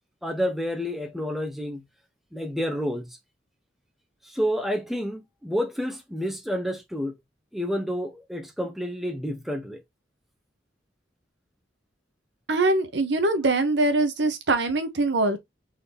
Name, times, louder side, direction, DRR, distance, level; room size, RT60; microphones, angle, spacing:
voice 1, 0.2-1.8 2.3-3.1 4.2-7.1 7.5-9.8, equal, ahead, 0.7 m, -29 dB
voice 2, 12.5-15.4, right 2 dB, 75° right, 0.9 m, -23 dB
4.0 x 2.7 x 3.4 m
head